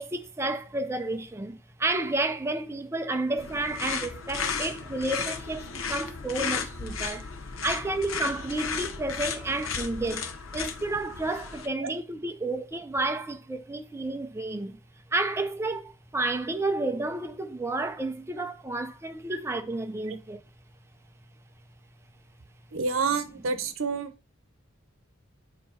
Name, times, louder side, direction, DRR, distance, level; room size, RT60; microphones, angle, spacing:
voice 1, 0.0-7.3 7.6-14.8 15.1-20.4, right 2 dB, 15° right, 0.4 m, -31 dB
sound 1, 3.4-11.7, left 6 dB, 90° left, 0.8 m, -34 dB
voice 2, 22.7-24.1, right 4 dB, 80° right, 0.7 m, -29 dB
6.8 x 2.9 x 4.9 m
head